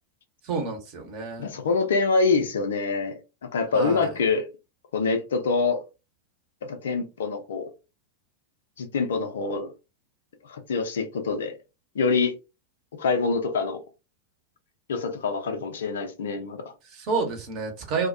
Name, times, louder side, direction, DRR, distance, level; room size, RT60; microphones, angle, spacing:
voice 1, 0.4-1.5 3.7-4.1 16.8-18.1, right 4 dB, 40° right, 0.9 m, -29 dB
voice 2, 1.4-4.5 4.9-5.8 6.6-7.7 8.8-9.7 10.4-11.6 11.9-12.3 12.9-13.8 14.9-16.7, left 4 dB, 60° left, 0.5 m, -25 dB
2.2 x 2.1 x 2.6 m
figure-of-eight pair, 90°, 0 cm